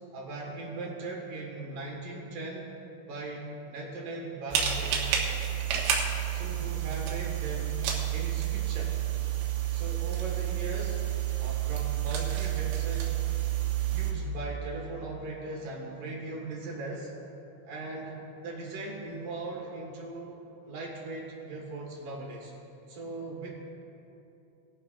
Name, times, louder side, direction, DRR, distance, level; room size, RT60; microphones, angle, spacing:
voice 1, 0.1-2.7 3.1-4.9 6.3-7.9 8.1-8.9 9.7-11.0 11.4-13.1 13.9-17.1 17.7-22.5 22.9-23.5, right 2 dB, 60° right, -2 dB, 2.6 m, -39 dB
sound 1, 4.5-14.1, right 10 dB, 85° right, 3.9 m, -30 dB
20.5 x 12.0 x 2.5 m, 2.8 s
omnidirectional pair, 5.5 m